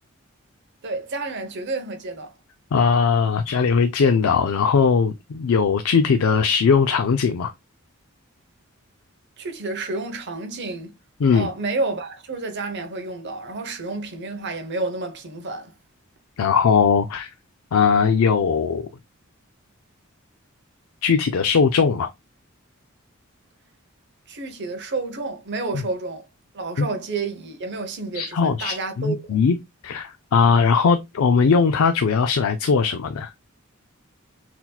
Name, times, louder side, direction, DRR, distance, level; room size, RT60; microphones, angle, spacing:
voice 1, 0.8-2.3 9.4-10.9 11.3-15.7 24.3-26.3 26.5-29.5, right 3 dB, 55° right, 0.8 m, -30 dB
voice 2, 2.7-7.5 11.2-11.5 16.4-17.3 17.7-18.9 21.0-22.1 25.7-25.8 26.8-26.9 28.1-29.6 29.8-33.3, left 5 dB, 75° left, 0.4 m, -19 dB
5.9 x 2.8 x 2.2 m
head